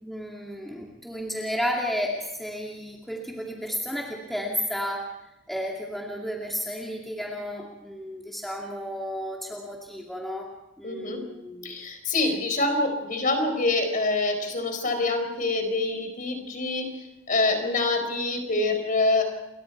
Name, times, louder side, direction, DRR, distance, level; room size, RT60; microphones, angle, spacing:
voice 1, 0.0-5.2 5.5-10.5 10.8-11.8, equal, ahead, -2 dB, 2.4 m, -32 dB
voice 2, 10.8-11.2 11.6-19.2, left 2 dB, 40° left, 5 dB, 4.6 m, -26 dB
29.0 x 23.0 x 4.6 m, 0.95 s
head